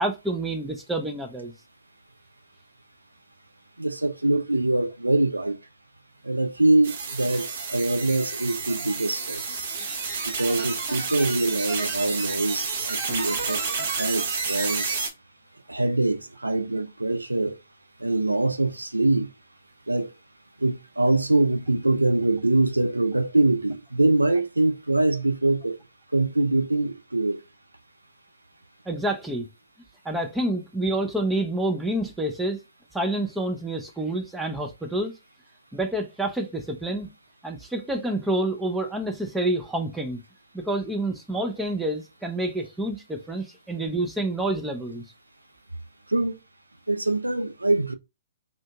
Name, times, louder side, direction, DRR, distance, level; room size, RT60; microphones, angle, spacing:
voice 1, 0.0-1.5 9.7-10.1 28.9-29.5 30.0-32.6 32.9-35.1 35.7-37.1 37.4-40.2 40.5-45.0, right 1 dB, 5° right, 0.5 m, -28 dB
voice 2, 3.8-5.6 6.2-9.4 10.2-13.6 14.0-15.0 15.7-17.6 18.0-19.3 19.9-20.1 20.6-25.8 26.1-27.4 46.1-46.4 46.9-47.9, right 2 dB, 90° right, 0.4 m, -24 dB
sound 1, 6.8-15.1, right 4 dB, 55° right, 0.8 m, -30 dB
3.7 x 2.6 x 2.2 m
figure-of-eight pair, 125°, 0 cm